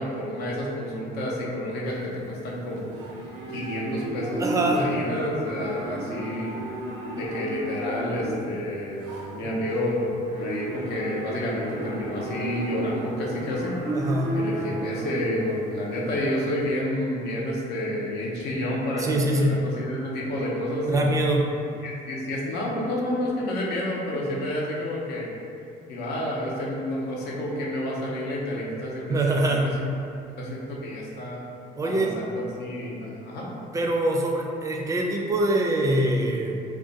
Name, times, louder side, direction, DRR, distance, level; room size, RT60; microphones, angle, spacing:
voice 1, 0.0-2.9 3.5-6.6 7.1-13.7 14.3-21.0 21.8-25.3 25.9-29.8 30.4-31.4 31.8-33.5, left 1 dB, 75° left, -4 dB, 0.7 m, -29 dB
Livestock farm animals working animals, 1.9-16.6, right 1 dB, 90° right, 0.5 m, -34 dB
voice 2, 4.4-4.9 13.9-14.3 19.0-19.6 20.9-21.5 29.1-29.8 31.8-32.1 33.7-36.6, right 1 dB, 20° right, 0 dB, 0.4 m, -24 dB
2.5 x 2.2 x 3.8 m, 2.5 s
cardioid pair, 110°, 17 cm